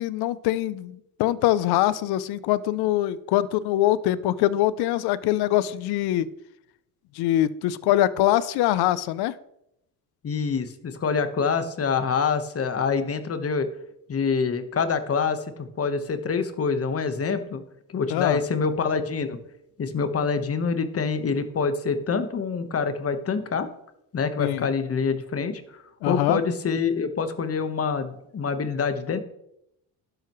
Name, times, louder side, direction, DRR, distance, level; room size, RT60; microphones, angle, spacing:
voice 1, 0.0-6.3 7.1-9.3 18.1-18.4 24.4-24.7 26.0-26.4, left 14 dB, 75° left, 17 dB, 0.6 m, -23 dB
voice 2, 10.2-13.7 14.1-17.6 17.9-19.4 19.8-23.7 24.1-29.2, left 5 dB, 35° left, 9 dB, 1.3 m, -26 dB
12.0 x 10.5 x 3.1 m, 0.80 s
cardioid pair, 95°, 39 cm